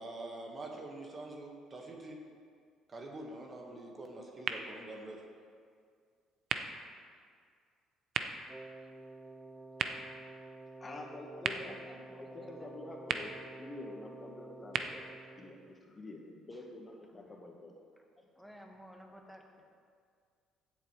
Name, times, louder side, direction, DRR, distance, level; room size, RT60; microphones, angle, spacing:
voice 1, 0.0-2.2 2.9-5.2, right 2 dB, 35° right, 1 dB, 1.6 m, -45 dB
sound 1, 4.4-16.3, right 7 dB, 60° right, 0.6 m, -43 dB
Wind instrument woodwind instrument, 8.5-15.8, right 2 dB, 20° right, 0.4 m, -51 dB
voice 2, 10.8-13.3 13.6-15.0 15.4-17.8 18.2-18.3, left 2 dB, 30° left, 1 dB, 1.4 m, -47 dB
voice 3, 11.6-12.7 16.5-16.7 17.1-17.5 18.0-18.1 18.3-19.7, equal, ahead, 1 dB, 1.7 m, -55 dB
15.5 x 7.6 x 3.3 m, 2.1 s
supercardioid pair, 85°, 0 cm